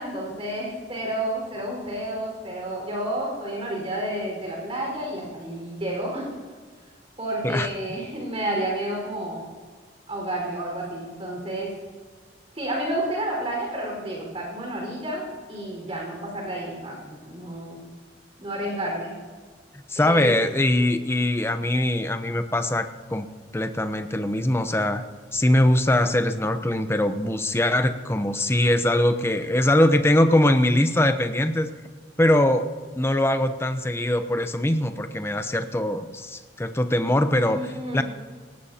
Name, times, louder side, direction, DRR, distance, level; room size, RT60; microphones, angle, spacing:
voice 1, 0.0-6.3 7.2-9.4 10.1-11.7 12.5-17.8 18.4-19.2 20.0-20.4 37.3-38.0, right 1 dB, 35° right, -2 dB, 4.8 m, -30 dB
voice 2, 19.9-23.3 23.5-25.0 25.3-31.7 32.2-32.7 33.0-38.0, left 1 dB, 15° left, 9 dB, 0.7 m, -22 dB
19.0 x 17.0 x 2.9 m, 1.5 s
head